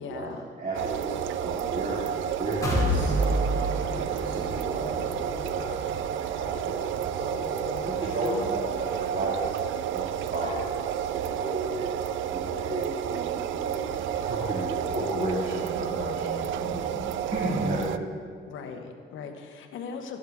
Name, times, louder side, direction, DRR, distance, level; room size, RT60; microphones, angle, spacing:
voice 1, 0.0-0.4 8.0-8.5 18.5-20.2, left 5 dB, 80° left, 4 dB, 1.0 m, -39 dB
voice 2, 0.6-18.1, right 1 dB, 40° right, -5 dB, 2.0 m, -34 dB
sound 1, 0.7-18.0, right 10 dB, 75° right, 0.4 m, -31 dB
sound 2, 2.6-10.4 10.8-10.9 11.3-11.4, equal, 15° left, 2.4 m, -32 dB
12.5 x 11.5 x 3.5 m, 2.1 s
cardioid pair, 90°, 20 cm